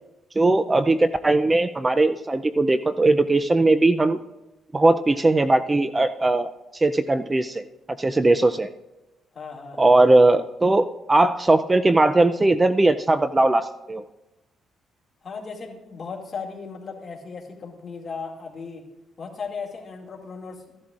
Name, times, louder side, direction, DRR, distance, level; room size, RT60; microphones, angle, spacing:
voice 1, 0.4-4.2 4.7-7.7 8.0-8.7 9.8-14.0, right 2 dB, 20° right, 11 dB, 0.4 m, -19 dB
voice 2, 9.3-10.0 15.2-18.8 19.2-20.8, left 5 dB, 40° left, -1 dB, 2.2 m, -36 dB
14.5 x 11.5 x 2.5 m, 0.98 s
cardioid pair, 90°, 0 cm